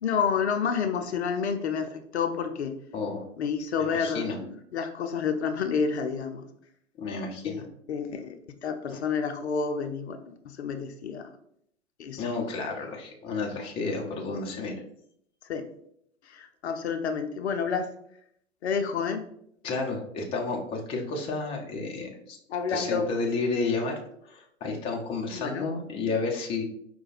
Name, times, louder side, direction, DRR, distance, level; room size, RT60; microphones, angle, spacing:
voice 1, 0.0-2.7 3.4-6.4 7.4-7.6 7.9-8.3 8.6-10.2 10.5-11.3 12.0-12.2 15.5-15.6 16.3-17.9 18.6-19.3 22.5-23.1 25.3-25.7, left 6 dB, 60° left, 6 dB, 0.6 m, -29 dB
voice 2, 2.9-3.3 3.8-4.4 7.0-7.6 8.9-9.0 12.2-14.8 19.6-22.4 22.7-26.6, left 3 dB, 15° left, 0 dB, 0.5 m, -31 dB
4.9 x 2.2 x 4.1 m, 0.70 s
figure-of-eight pair, 100°, 37 cm